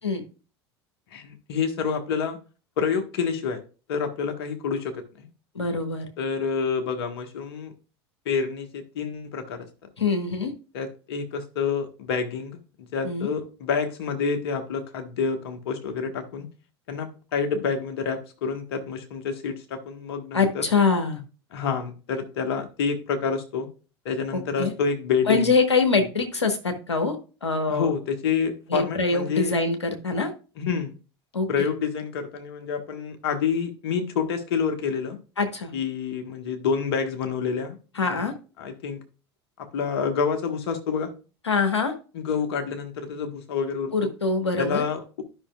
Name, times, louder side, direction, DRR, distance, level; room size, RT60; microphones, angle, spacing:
voice 1, 1.1-2.4 2.8-3.6 3.9-5.3 6.2-7.7 8.2-9.7 10.7-16.5 16.9-20.6 21.5-23.7 24.0-25.5 27.7-29.5 30.6-30.9 31.5-35.2 35.7-37.8 38.0-38.3 38.6-39.0 39.6-41.1 42.1-43.9 44.6-45.2, left 6 dB, 65° left, 5 dB, 1.5 m, -28 dB
voice 2, 5.5-6.1 10.0-10.5 13.0-13.3 20.3-21.2 24.3-24.7 25.3-27.9 28.7-30.3 31.3-31.7 35.4-35.7 37.9-38.3 41.5-41.9 43.9-44.8, left 4 dB, 85° left, 6 dB, 1.3 m, -24 dB
12.0 x 5.7 x 2.4 m, 0.35 s
figure-of-eight pair, 80°, 14 cm